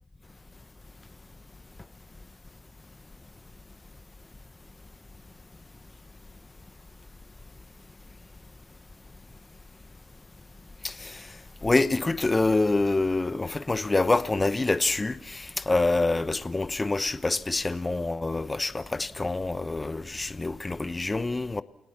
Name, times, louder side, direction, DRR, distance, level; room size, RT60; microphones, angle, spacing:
voice 1, 10.8-11.3 11.6-21.6, left 2 dB, 20° left, 1.0 m, -26 dB
29.5 x 17.5 x 7.2 m
cardioid pair, 90°, 0 cm